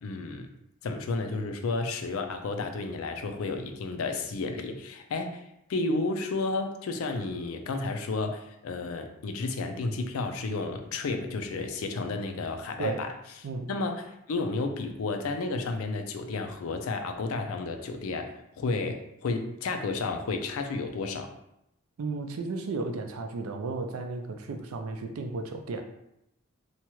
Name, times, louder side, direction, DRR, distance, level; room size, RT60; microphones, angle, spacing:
voice 1, 0.0-0.5 0.8-5.4 5.7-13.1 13.7-21.3, left 3 dB, 80° left, 6 dB, 0.4 m, -32 dB
voice 2, 22.0-25.8, right 3 dB, 85° right, 6 dB, 0.4 m, -34 dB
2.8 x 2.3 x 2.9 m, 0.82 s
head